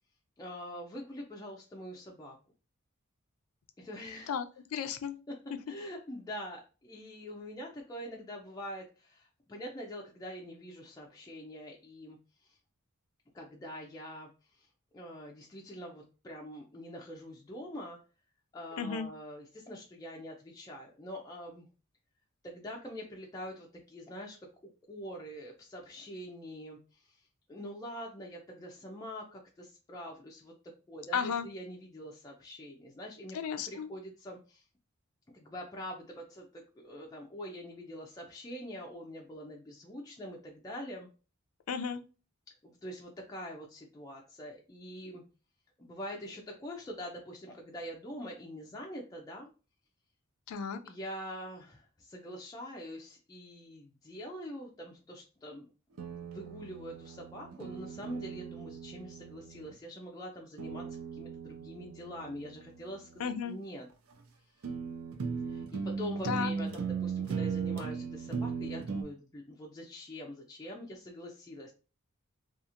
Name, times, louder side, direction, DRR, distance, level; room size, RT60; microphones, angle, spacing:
voice 1, 0.4-2.4 3.8-4.3 5.7-12.6 13.3-14.7 14.9-18.0 18.5-21.7 22.4-24.4 24.9-27.2 27.5-30.5 30.9-33.4 33.7-34.6 35.3-41.1 42.6-45.2 45.8-49.5 50.8-55.7 56.2-63.9 65.5-71.7, equal, 15° left, -1 dB, 0.4 m, -44 dB
voice 2, 4.3-5.2 18.8-19.1 31.1-31.5 33.3-33.9 41.7-42.0 50.5-50.8 63.2-63.6 66.2-66.5, left 6 dB, 80° left, 9 dB, 0.4 m, -34 dB
sound 1, 56.0-59.7 60.6-63.3 64.1-64.2 64.6-69.0, right 5 dB, 75° right, 0.5 m, -38 dB
2.8 x 2.4 x 2.4 m, 0.33 s
head